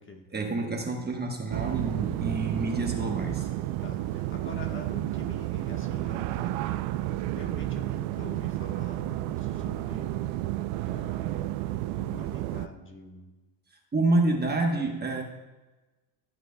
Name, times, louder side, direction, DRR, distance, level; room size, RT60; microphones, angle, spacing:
voice 1, 0.3-3.5 13.9-15.2, right 2 dB, 20° right, 1 dB, 1.1 m, -28 dB
sound 1, 1.5-12.7, right 14 dB, 85° right, 0.7 m, -31 dB
voice 2, 3.8-6.9 7.3-10.1 10.8-11.6 11.9-13.3, left 3 dB, 25° left, 3 dB, 1.4 m, -45 dB
15.5 x 8.1 x 2.3 m, 1.1 s
cardioid pair, 120°, 47 cm